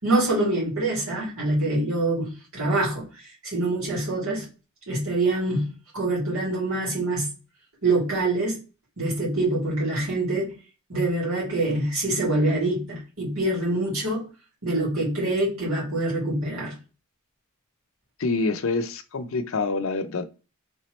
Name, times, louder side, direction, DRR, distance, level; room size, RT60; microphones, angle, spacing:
voice 1, 0.0-3.1 3.5-4.5 4.9-7.3 7.8-8.6 9.0-10.6 10.9-14.3 14.6-16.7, right 2 dB, 75° right, 2.5 m, -25 dB
voice 2, 18.2-20.3, left 3 dB, 65° left, 0.5 m, -26 dB
4.3 x 3.3 x 3.1 m
head